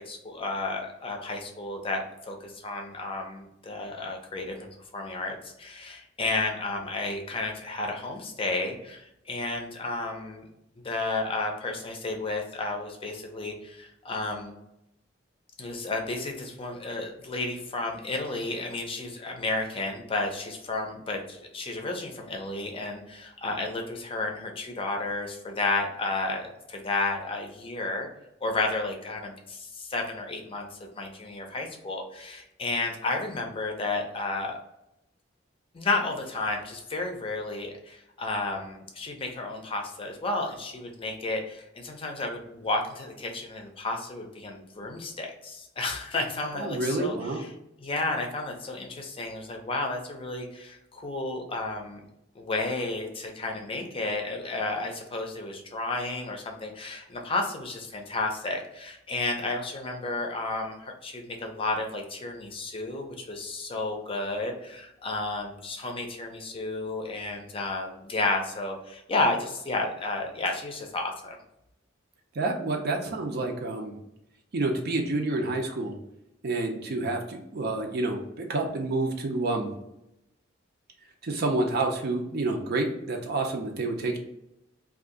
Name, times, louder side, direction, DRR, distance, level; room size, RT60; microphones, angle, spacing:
voice 1, 0.1-4.7 4.9-10.5 10.8-14.6 15.6-28.1 28.4-34.6 35.7-47.2 47.8-52.0 52.4-71.4, left 2 dB, 30° left, 2 dB, 0.5 m, -32 dB
voice 2, 46.5-47.4 72.3-74.0 74.5-76.0 76.4-79.7 81.2-84.2, right 2 dB, 55° right, 2 dB, 0.5 m, -28 dB
2.7 x 2.4 x 3.7 m, 0.84 s
head